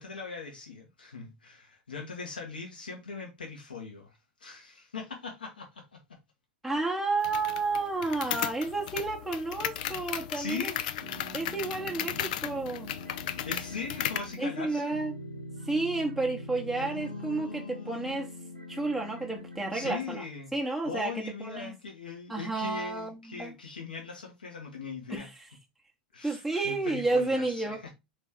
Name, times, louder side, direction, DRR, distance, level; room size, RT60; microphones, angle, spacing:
voice 1, 0.0-6.2 10.3-10.8 13.4-15.0 16.8-18.2 19.7-20.5 20.8-25.3 26.1-27.9, left 4 dB, 80° left, 1.2 m, -40 dB
voice 2, 6.6-10.7 11.3-12.9 14.4-15.1 15.6-18.3 18.7-20.2 20.5-21.7 22.3-23.5 25.1-25.3 26.2-27.8, right 3 dB, ahead, 0.9 m, -31 dB
sound 1, 7.2-14.3, left 11 dB, 60° left, 0.4 m, -35 dB
sound 2, 11.0-19.9, equal, 90° right, 0.8 m, -44 dB
4.1 x 3.2 x 3.5 m
figure-of-eight pair, 85°, 5 cm